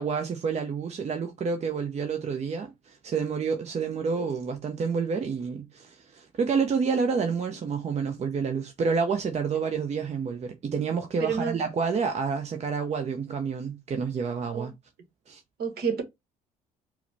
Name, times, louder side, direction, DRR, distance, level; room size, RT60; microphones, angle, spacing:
voice 1, 0.0-14.7 15.3-15.4, right 5 dB, 35° right, 0.8 m, -29 dB
voice 2, 11.2-11.6 14.5-14.7 15.6-16.0, right 6 dB, 55° right, 1.2 m, -28 dB
4.7 x 2.1 x 3.4 m
figure-of-eight pair, 55°, 19 cm